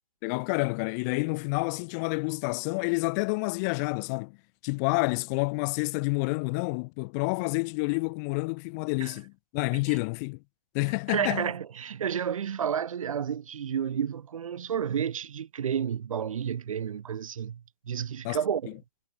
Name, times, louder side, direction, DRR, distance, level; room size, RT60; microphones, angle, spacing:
voice 1, 0.2-4.4 4.6-10.4 10.7-11.5 18.2-18.4, left 31 dB, 25° left, 1.1 m, -29 dB
voice 2, 11.1-17.6 17.9-18.7, right 8 dB, 55° right, 0.9 m, -31 dB
figure-of-eight pair, 130°, 21 cm